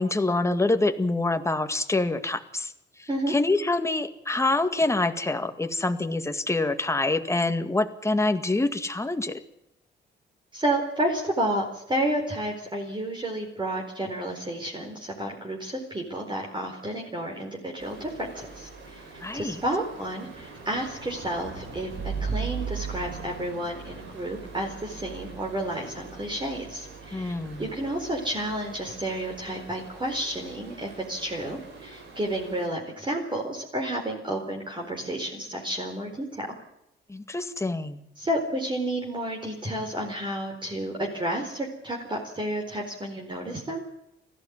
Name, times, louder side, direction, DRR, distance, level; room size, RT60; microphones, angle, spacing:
voice 1, 0.0-2.7 3.0-9.4 19.2-19.6 27.1-27.7 37.1-38.0, left 2 dB, 15° left, 8 dB, 1.9 m, -26 dB
voice 2, 10.5-19.0 19.3-36.5 38.2-43.8, right 1 dB, 25° right, 0 dB, 4.4 m, -31 dB
Stream, 17.8-32.7, right 5 dB, 80° right, 6.4 m, -40 dB
18.5 x 15.0 x 9.6 m, 0.81 s
cardioid pair, 90°, 20 cm